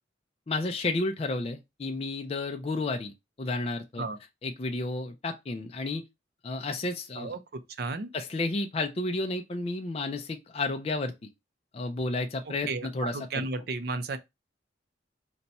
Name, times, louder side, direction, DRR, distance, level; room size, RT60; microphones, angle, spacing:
voice 1, 0.5-3.1 3.4-4.0 4.4-6.0 6.4-7.4 8.1-11.1 11.7-13.5, left 2 dB, 35° left, 0.4 m, -31 dB
voice 2, 7.8-8.1 12.7-14.2, right 3 dB, 60° right, 0.5 m, -33 dB
4.0 x 2.2 x 4.1 m
head